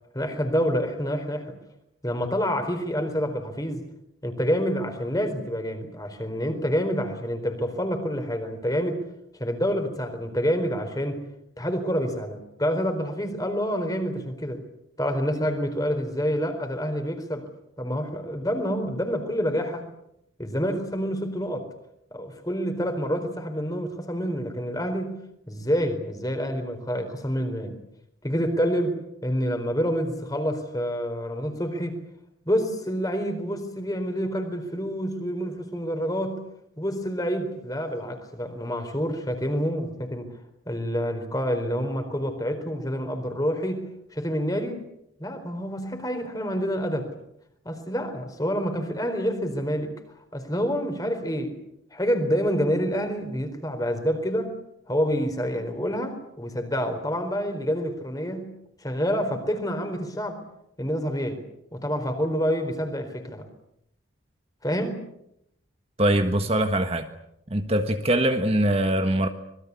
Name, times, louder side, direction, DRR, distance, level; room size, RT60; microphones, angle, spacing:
voice 1, 0.1-1.6 2.0-3.8 4.2-9.0 9.3-11.2 11.6-14.6 15.0-17.5 17.8-19.8 20.4-21.7 22.1-25.2 25.5-27.8 28.2-32.0 32.5-36.4 36.8-40.3 40.7-43.9 44.1-44.8 45.2-47.1 47.6-49.9 50.3-51.6 51.9-54.5 54.9-58.5 58.8-60.4 60.8-61.4 61.7-63.5 64.6-65.0, equal, 20° left, 4.2 m, -27 dB
voice 2, 66.0-67.1 67.5-69.3, right 1 dB, 30° right, 1.4 m, -22 dB
26.0 x 21.5 x 8.4 m
head